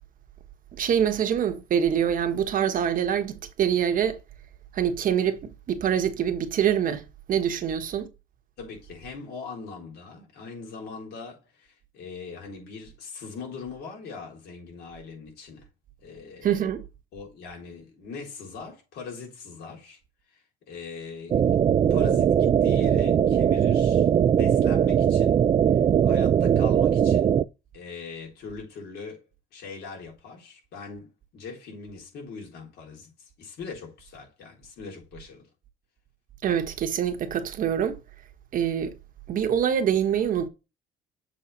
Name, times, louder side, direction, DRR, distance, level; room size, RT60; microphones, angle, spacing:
voice 1, 0.8-4.2 4.7-8.1 16.4-16.8 36.4-38.0 38.5-38.9 39.3-40.5, right 9 dB, 55° right, 1.2 m, -25 dB
voice 2, 8.6-15.7 16.0-16.6 17.1-20.0 20.3-21.6 21.9-25.4 25.7-27.4 27.7-29.2 29.5-35.5, left 4 dB, 75° left, 3.7 m, -41 dB
sound 1, 21.3-27.4, right 9 dB, 35° right, 0.4 m, -20 dB
7.4 x 4.0 x 4.0 m
cardioid pair, 110°, 17 cm